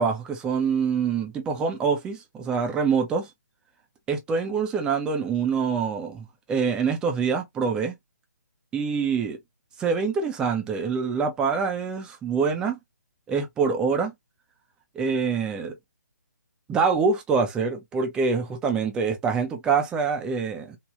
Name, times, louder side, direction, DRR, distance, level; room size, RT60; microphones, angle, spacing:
voice 1, 0.0-3.3 4.1-7.9 8.7-9.4 9.8-12.8 13.3-14.1 14.9-15.7 16.7-20.8, right 5 dB, 10° right, 0.4 m, -25 dB
3.3 x 2.1 x 2.3 m
figure-of-eight pair, 140°, 10 cm